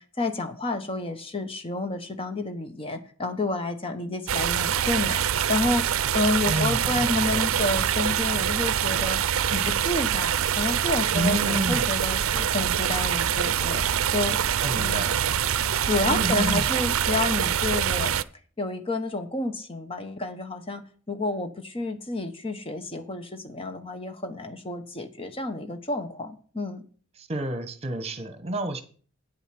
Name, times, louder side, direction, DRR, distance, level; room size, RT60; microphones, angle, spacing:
voice 1, 0.0-5.9 6.1-9.2 9.4-12.2 12.5-13.9 14.1-14.4 14.8-15.1 15.8-18.2 18.6-26.8, left 2 dB, 25° left, 8 dB, 1.1 m, -30 dB
sound 1, 4.3-18.2, right 9 dB, 80° right, 0.5 m, -25 dB
voice 2, 6.5-7.4 11.1-11.9 12.1-12.5 14.6-15.2 16.1-16.6 27.2-28.8, right 1 dB, 30° right, 10 dB, 1.2 m, -30 dB
9.2 x 8.0 x 5.9 m, 0.42 s
head